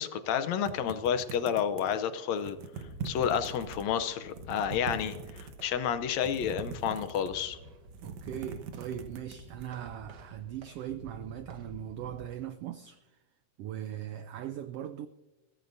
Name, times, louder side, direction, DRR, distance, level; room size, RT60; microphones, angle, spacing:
voice 1, 0.0-2.6 3.0-7.6, left 8 dB, 75° left, 1.9 m, -30 dB
sound 1, 0.6-2.0 2.4-3.8 4.2-5.6 6.1-7.5 7.8-9.7, right 6 dB, 70° right, 2.3 m, -42 dB
sound 2, 2.8-12.3, right 1 dB, 50° right, 1.3 m, -49 dB
voice 2, 8.0-13.1 13.6-15.1, right 11 dB, 85° right, 1.3 m, -40 dB
22.5 x 15.5 x 2.6 m
omnidirectional pair, 3.4 m